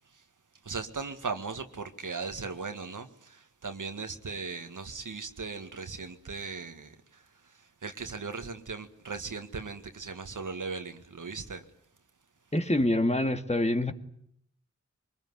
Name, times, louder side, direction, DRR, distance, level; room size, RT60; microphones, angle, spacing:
voice 1, 0.6-7.2 7.8-11.6, right 4 dB, 90° right, 1.9 m, -38 dB
voice 2, 12.5-13.9, left 1 dB, 20° left, 2.1 m, -26 dB
24.0 x 20.5 x 9.7 m
wide cardioid pair, 55°, 30 cm